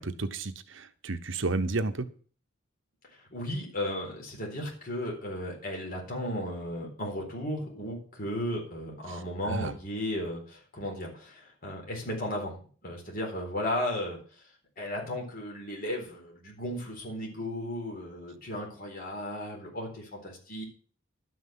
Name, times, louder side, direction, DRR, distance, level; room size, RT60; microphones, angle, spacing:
voice 1, 0.0-2.1 9.5-9.7, right 3 dB, 65° right, 10 dB, 1.0 m, -31 dB
voice 2, 3.1-12.5 12.8-14.2 14.8-20.6, left 1 dB, 45° left, 0 dB, 4.1 m, -35 dB
12.0 x 6.1 x 7.6 m, 0.43 s
head